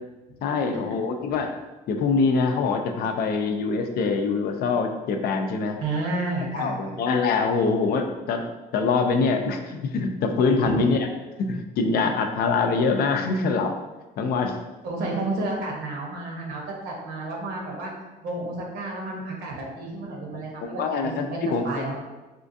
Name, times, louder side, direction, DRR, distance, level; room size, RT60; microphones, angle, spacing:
voice 1, 0.4-1.6 1.9-5.8 6.5-8.4 8.7-11.1 11.4-13.7 14.2-14.6 20.3-21.8, left 4 dB, 65° left, 5 dB, 0.5 m, -24 dB
voice 2, 5.8-7.0 10.6-10.8 14.8-17.9 18.2-21.4 21.6-22.0, right 2 dB, 75° right, -1 dB, 1.0 m, -31 dB
4.3 x 2.4 x 2.6 m, 1.1 s
cardioid pair, 110°, 17 cm